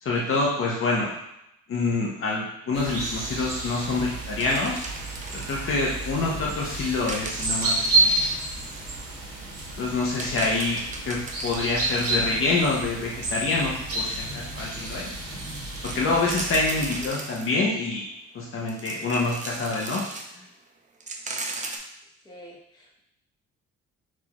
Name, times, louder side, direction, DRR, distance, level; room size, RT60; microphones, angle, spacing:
voice 1, 0.0-1.1 1.7-4.8 5.3-8.1 9.8-10.8 11.1-15.4 15.9-18.0 18.3-20.0, left 3 dB, 45° left, -3 dB, 0.7 m, -26 dB
sound 1, 2.7-17.1, right 2 dB, 55° right, 1.0 m, -30 dB
sound 2, 4.4-5.7 7.1-8.9 9.5-9.6 9.9-12.4 13.2-13.3 13.9-14.0 14.6-15.1 15.7-18.0 18.6-20.3 20.7-20.8 21.0-21.8, right 3 dB, 25° right, 0.4 m, -38 dB
voice 2, 16.9-17.2 22.2-23.0, equal, 15° left, -5 dB, 1.0 m, -46 dB
6.0 x 2.4 x 2.9 m, 0.82 s
wide cardioid pair, 160°, 29 cm